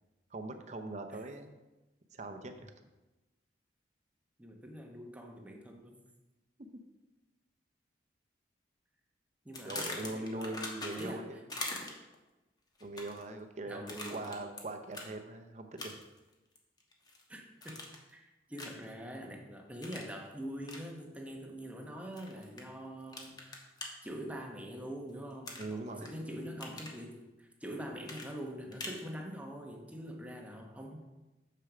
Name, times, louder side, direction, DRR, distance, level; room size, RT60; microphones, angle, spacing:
voice 1, 0.3-1.6 2.1-2.7 9.6-11.4 12.8-16.0 25.6-26.2, right 2 dB, 40° right, 7 dB, 0.7 m, -41 dB
voice 2, 4.4-6.0 9.4-10.6 10.9-11.3 13.7-14.4 17.3-17.8 18.1-23.6 24.0-31.0, equal, 10° right, 1 dB, 1.0 m, -44 dB
sound 1, 9.5-11.2 11.5-12.1 12.8-13.3 13.9-14.6 14.9-15.1 15.8-16.2 16.6-17.2 17.6-18.1 18.6-18.9 19.8-20.1 20.6-20.8 22.2-22.6 23.1-23.9 25.4-26.1 26.4-27.0 28.0-29.0, left 2 dB, 25° left, 1.1 m, -42 dB
6.9 x 6.4 x 5.0 m, 1.1 s
head